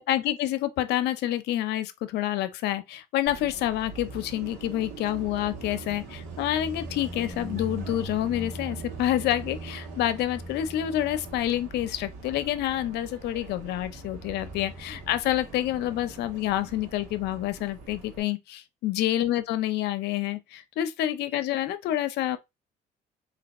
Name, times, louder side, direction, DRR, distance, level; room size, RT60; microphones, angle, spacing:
voice 1, 0.0-22.4, left 13 dB, 80° left, 0.6 m, -28 dB
Car passing by, 3.3-18.2, right 2 dB, 85° right, 1.7 m, -41 dB
3.4 x 2.9 x 4.1 m
cardioid pair, 110°, 17 cm